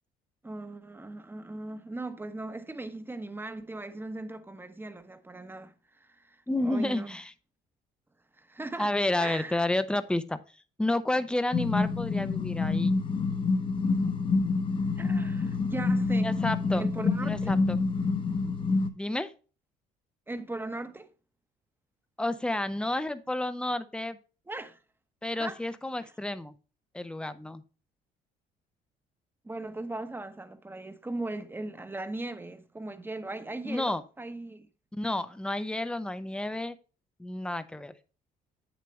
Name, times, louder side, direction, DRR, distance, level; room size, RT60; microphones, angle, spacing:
voice 1, 0.4-7.2 8.4-8.9 9.2-9.6 15.0-16.4 16.7-17.5 20.3-21.1 24.5-24.8 25.4-25.6 29.4-34.7, right 2 dB, 10° right, 1.1 m, -38 dB
voice 2, 6.5-7.3 8.8-10.4 10.8-12.9 16.2-16.8 17.2-17.8 19.0-19.3 22.2-24.2 25.2-26.5 26.9-27.6 33.6-34.0 34.9-36.8 37.2-37.9, left 1 dB, 5° left, 0.7 m, -30 dB
sound 1, 11.5-18.9, left 4 dB, 30° left, 1.1 m, -27 dB
8.3 x 7.1 x 3.2 m
cardioid pair, 110°, 17 cm